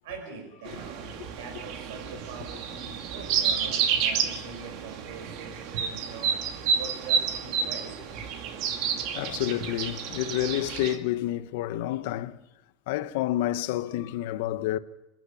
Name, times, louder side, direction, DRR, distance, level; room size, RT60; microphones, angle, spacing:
voice 1, 0.0-6.3 6.7-8.1 8.4-8.5, right 5 dB, 85° right, 5.2 m, -43 dB
sound 1, 0.7-11.0, right 7 dB, 55° right, 2.3 m, -30 dB
voice 2, 9.1-12.4 12.9-14.8, left 14 dB, 70° left, 1.0 m, -29 dB
27.5 x 11.0 x 8.6 m
supercardioid pair, 150°, 0 cm